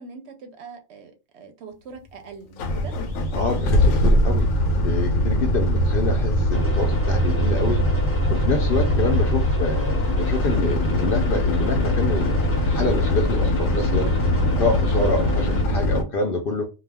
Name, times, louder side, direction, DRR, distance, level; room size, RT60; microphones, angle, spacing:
voice 1, 0.0-2.9 5.7-5.9 15.2-15.4, right 4 dB, 65° right, 0.7 m, -42 dB
sound 1, 2.6-16.0, equal, 90° left, 1.0 m, -21 dB
voice 2, 3.3-14.1 14.6-16.6, left 3 dB, 60° left, 0.6 m, -27 dB
sound 2, 6.5-15.6, left 2 dB, 15° left, 0.6 m, -34 dB
2.3 x 2.2 x 3.3 m
omnidirectional pair, 1.3 m